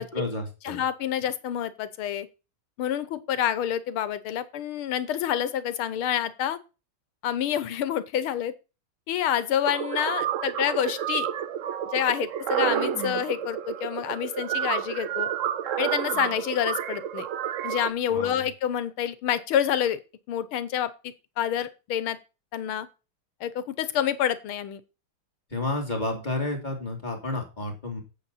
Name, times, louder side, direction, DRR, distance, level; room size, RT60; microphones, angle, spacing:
voice 1, 0.0-0.8 18.1-18.5 25.5-28.0, left 2 dB, 20° left, 3.3 m, -31 dB
voice 2, 0.7-2.3 2.8-6.6 7.2-8.5 9.1-11.3 11.9-15.3 15.8-17.3 17.6-20.0 20.3-22.2 22.5-22.9 23.4-24.8, left 10 dB, 90° left, 1.9 m, -28 dB
sound 1, 9.6-17.9, right 10 dB, 90° right, 0.6 m, -30 dB
9.1 x 8.1 x 4.2 m
omnidirectional pair, 2.3 m